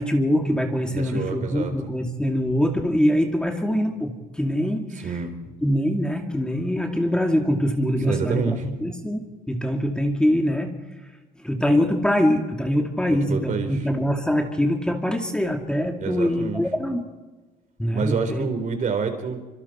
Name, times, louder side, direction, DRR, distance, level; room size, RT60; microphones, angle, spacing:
voice 1, 0.0-5.1 5.6-10.8 11.4-17.0 17.8-18.5, equal, 5° left, 3 dB, 2.2 m, -23 dB
voice 2, 0.9-1.7 5.0-5.3 8.0-8.6 13.1-13.9 16.0-16.6 17.9-19.4, right 5 dB, 50° right, 7 dB, 3.9 m, -27 dB
25.5 x 25.5 x 4.4 m, 1.2 s
cardioid pair, 110°, 17 cm